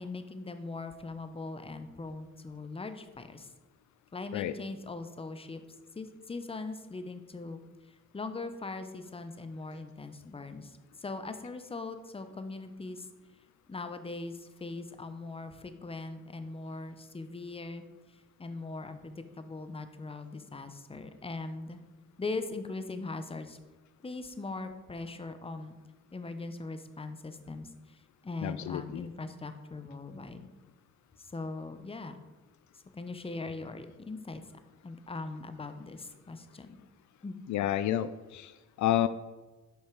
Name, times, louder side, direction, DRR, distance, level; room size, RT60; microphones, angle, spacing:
voice 1, 0.0-3.5 4.1-5.6 6.0-7.6 8.1-13.1 13.7-17.8 18.4-21.8 22.2-23.6 24.0-25.8 26.1-30.4 31.3-32.2 32.9-34.4 34.8-36.8 37.2-37.4, left 3 dB, 20° left, 9 dB, 0.9 m, -40 dB
voice 2, 28.4-29.1 37.5-39.1, left 12 dB, 70° left, 13 dB, 0.5 m, -30 dB
8.0 x 5.5 x 6.1 m, 1.2 s
cardioid pair, 90°, 30 cm